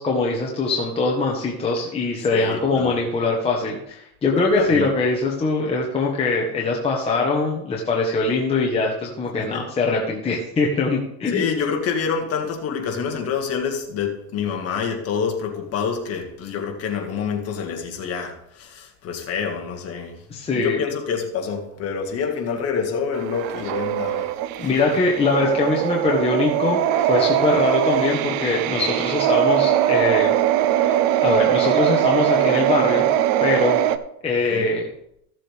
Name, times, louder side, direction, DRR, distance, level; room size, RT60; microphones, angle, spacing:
voice 1, 0.0-11.5 20.3-20.8 24.6-30.3 30.7-30.9 31.2-33.1 33.4-33.8 34.2-34.8, left 3 dB, 10° left, -2 dB, 1.1 m, -22 dB
voice 2, 2.3-3.0 4.4-4.9 9.3-9.7 11.3-20.2 20.5-24.3 24.6-25.0 34.5-34.7, left 6 dB, 30° left, 3 dB, 1.9 m, -27 dB
sound 1, 23.1-34.0, right 12 dB, 45° right, 0.6 m, -21 dB
15.0 x 7.5 x 3.4 m, 0.77 s
supercardioid pair, 150°, 47 cm